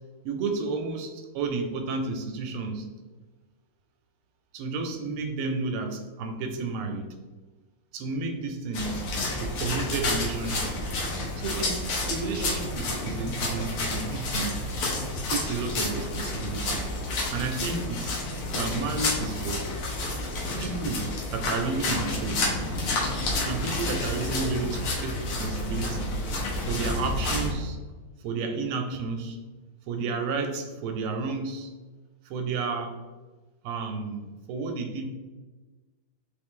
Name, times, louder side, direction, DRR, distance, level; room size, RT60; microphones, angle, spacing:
voice 1, 0.2-2.9 4.5-7.1 7.9-9.0 9.4-10.8 11.3-11.8 12.1-14.6 15.2-16.9 17.3-18.1 18.4-19.6 20.6-22.5 23.4-26.2 26.6-27.8 28.2-29.4 29.9-31.7 32.2-33.0 33.6-35.0, right 4 dB, 80° right, 5 dB, 1.4 m, -31 dB
sound 1, 8.7-27.5, left 2 dB, 90° left, 1.9 m, -30 dB
4.3 x 3.2 x 3.6 m, 1.3 s
omnidirectional pair, 2.3 m